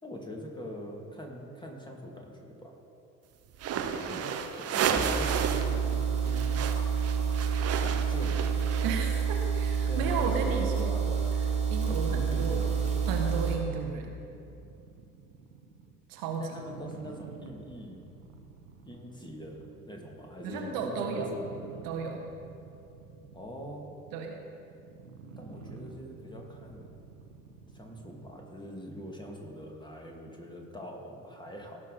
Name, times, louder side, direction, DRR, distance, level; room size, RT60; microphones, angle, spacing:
voice 1, 0.0-2.7 3.9-4.3 4.6-6.7 7.7-8.5 9.5-11.2 11.9-13.1 16.4-18.1 18.8-21.5 23.3-23.9 25.4-26.9 27.7-31.8, equal, 10° left, 0 dB, 2.0 m, -43 dB
sound 1, 3.5-5.8 6.0-9.2, right 7 dB, 35° right, 0.9 m, -32 dB
sound 2, 4.9-13.6, right 6 dB, 15° right, 2.0 m, -28 dB
voice 2, 8.8-11.0 11.7-12.6 13.1-14.1 16.1-16.6 20.4-21.3 21.8-22.2 24.1-24.4, right 5 dB, 55° right, 2 dB, 1.1 m, -33 dB
sound 3, 11.5-28.8, right 4 dB, 75° right, 1.0 m, -50 dB
16.5 x 6.1 x 3.9 m, 2.7 s
figure-of-eight pair, 55°, 41 cm